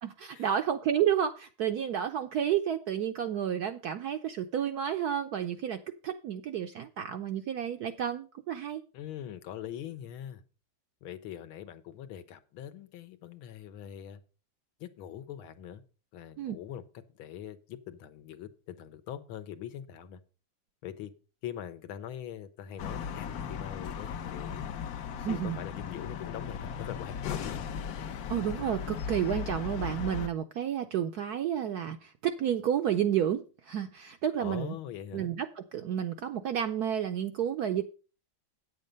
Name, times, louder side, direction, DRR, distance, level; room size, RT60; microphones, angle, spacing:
voice 1, 0.0-8.8 16.4-16.6 25.1-25.6 28.3-34.8 35.1-37.8, right 9 dB, 75° right, 7 dB, 0.9 m, -31 dB
voice 2, 8.9-10.4 11.0-14.2 14.8-15.8 16.1-20.2 20.8-21.1 21.4-24.7 25.3-27.6 34.4-35.3, left 10 dB, 90° left, 11 dB, 1.7 m, -42 dB
sound 1, 22.8-30.3, left 7 dB, 65° left, 0.9 m, -37 dB
9.1 x 7.5 x 5.2 m, 0.35 s
omnidirectional pair, 2.3 m